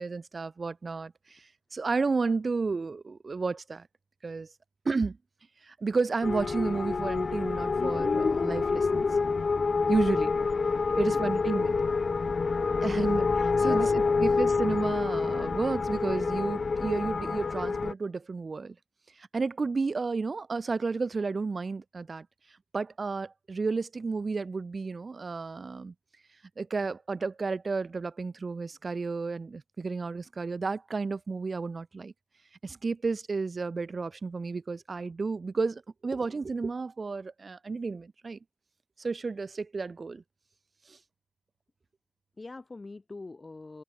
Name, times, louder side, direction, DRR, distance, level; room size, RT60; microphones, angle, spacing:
voice 1, 0.0-1.4 1.7-3.9 4.2-4.5 4.9-5.2 5.7-9.0 9.9-10.4 11.0-11.8 12.8-18.8 19.3-22.3 22.7-25.9 26.6-32.1 32.6-38.4 39.0-40.2 40.9-41.0, right 4 dB, 55° right, 1.9 m, -32 dB
sound 1, 6.2-17.9, left 4 dB, 60° left, 0.3 m, -27 dB
voice 2, 10.9-11.3 12.9-13.1 13.6-14.4 42.4-43.8, left 3 dB, 40° left, 4.3 m, -44 dB
cardioid pair, 50°, 0 cm